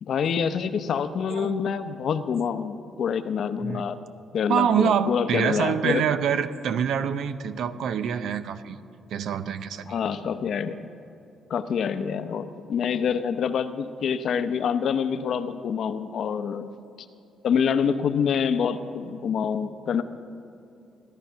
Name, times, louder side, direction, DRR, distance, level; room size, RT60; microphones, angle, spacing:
voice 1, 0.0-4.0 4.3-6.0 9.9-10.8 11.5-16.7 17.4-20.0, left 7 dB, 55° left, 10 dB, 0.8 m, -26 dB
voice 2, 4.5-8.8 9.1-9.9, right 8 dB, 70° right, 12 dB, 0.7 m, -25 dB
16.5 x 12.0 x 5.7 m, 2.7 s
cardioid pair, 115°, 0 cm